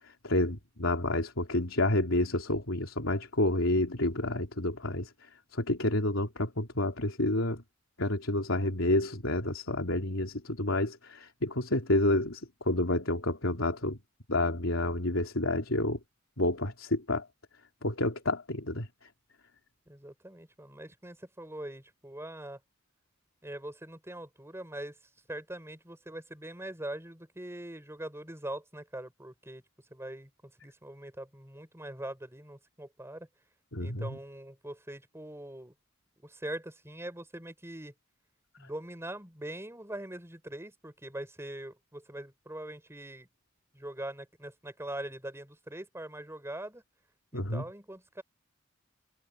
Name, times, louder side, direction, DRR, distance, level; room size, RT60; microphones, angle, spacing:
voice 1, 0.2-5.1 5.5-7.6 8.0-14.0 14.3-16.0 16.4-17.3 17.8-18.9 33.7-34.2 47.3-47.6, left 1 dB, 80° left, 3.6 m, -29 dB
voice 2, 19.9-22.6 23.4-25.0 25.3-29.6 29.9-33.3 33.8-35.7 36.2-37.9 38.6-43.3 43.7-46.8 47.3-48.2, right 1 dB, 15° right, 6.3 m, -42 dB
head